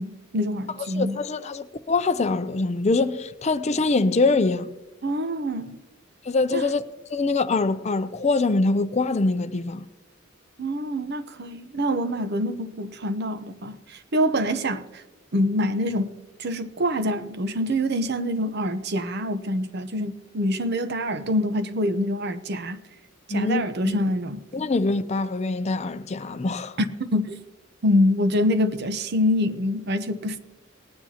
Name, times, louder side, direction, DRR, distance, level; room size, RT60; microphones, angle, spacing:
voice 1, 0.0-1.2 5.0-5.8 6.5-6.7 10.6-15.0 15.3-22.8 23.3-24.4 26.8-27.4 27.8-30.4, left 1 dB, 55° right, 0.8 m, -25 dB
voice 2, 1.0-4.7 6.2-6.8 7.1-9.9 23.3-24.0 24.5-26.8, left 3 dB, 35° left, 0.5 m, -24 dB
19.0 x 9.9 x 2.8 m
head